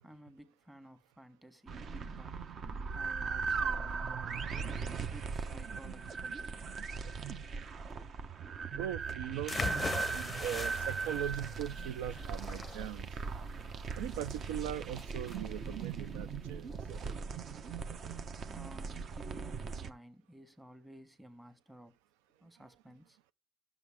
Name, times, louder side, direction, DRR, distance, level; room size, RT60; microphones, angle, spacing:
voice 1, 0.0-2.4 2.9-4.7 5.1-7.5 18.5-22.0 22.4-23.2, right 1 dB, 10° right, 1.6 m, -55 dB
sound 1, 1.7-19.9, right 5 dB, 45° right, 1.0 m, -39 dB
voice 2, 8.8-9.6 10.1-13.1 14.0-16.7, right 11 dB, 90° right, 0.5 m, -39 dB
sound 2, 9.5-17.1, left 4 dB, 20° left, 0.6 m, -42 dB
11.0 x 7.2 x 3.5 m
supercardioid pair, 100°, 0 cm